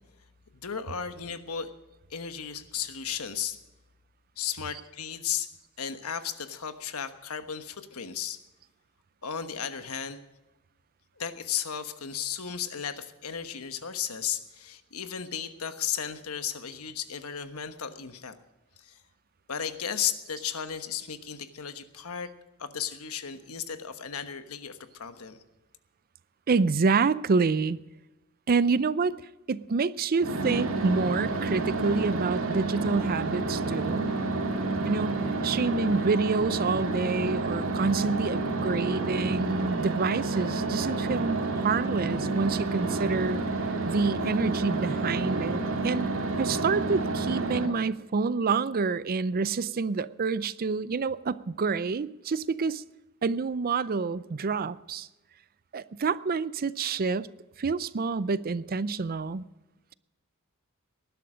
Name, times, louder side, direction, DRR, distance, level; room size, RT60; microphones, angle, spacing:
voice 1, 0.5-1.7 2.1-3.6 4.4-5.5 5.8-8.4 9.2-10.2 11.2-18.4 18.8-19.0 19.5-22.3 22.6-25.4, left 8 dB, 80° left, 1.2 m, -34 dB
voice 2, 26.5-27.8 28.5-29.2 29.5-34.2 34.8-43.4 43.9-46.1 46.4-52.8 53.2-55.1 55.7-57.3 57.6-59.4, right 4 dB, 45° right, 0.5 m, -28 dB
sound 1, 30.2-47.7, right 3 dB, 65° right, 2.4 m, -29 dB
19.0 x 11.5 x 5.0 m
head